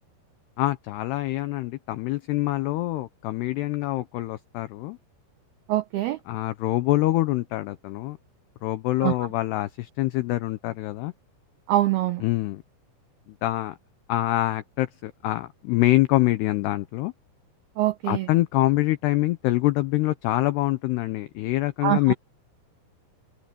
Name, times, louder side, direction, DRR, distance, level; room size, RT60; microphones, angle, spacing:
voice 1, 0.6-5.0 6.3-8.2 8.6-11.1 12.2-12.6 13.4-13.8 14.1-17.1 18.0-22.1, left 17 dB, 90° left, 2.3 m, -25 dB
voice 2, 5.7-6.2 9.0-9.1 11.7-12.2 17.8-18.3 21.8-22.1, right 14 dB, 90° right, 2.1 m, -24 dB
open air
omnidirectional pair, 5.7 m